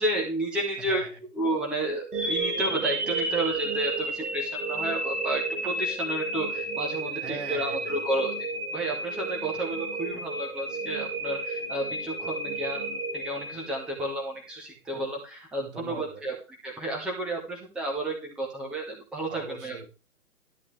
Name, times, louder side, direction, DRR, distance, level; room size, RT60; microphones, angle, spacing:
voice 1, 0.0-8.3 8.7-19.8, right 1 dB, ahead, -2 dB, 1.1 m, -31 dB
sound 1, 2.1-14.2, right 2 dB, 80° right, 4.4 m, -32 dB
voice 2, 7.2-8.0 15.6-16.3 19.3-19.9, right 3 dB, 45° right, 2 dB, 3.7 m, -40 dB
13.0 x 9.8 x 3.3 m, 0.34 s
figure-of-eight pair, 140°, 45 cm